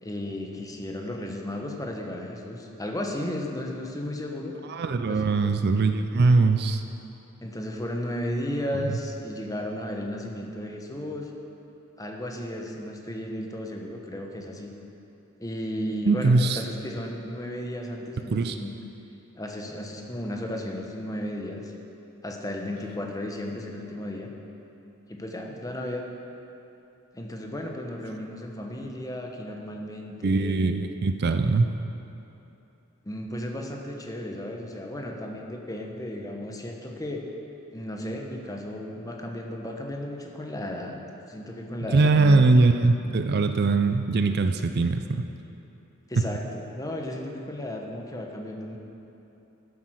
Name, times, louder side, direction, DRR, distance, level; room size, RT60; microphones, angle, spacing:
voice 1, 0.0-4.6 5.1-5.3 7.4-11.3 12.0-14.7 15.4-18.7 19.3-21.7 22.2-24.3 25.1-26.1 27.1-30.6 33.0-37.2 37.7-41.0 41.3-42.5 46.1-48.8, left 1 dB, 15° left, 1 dB, 1.0 m, -34 dB
voice 2, 4.7-6.8 16.0-16.6 18.3-18.6 30.2-31.7 41.9-45.3, right 3 dB, 50° right, 7 dB, 0.4 m, -21 dB
12.5 x 7.8 x 6.3 m, 2.9 s
head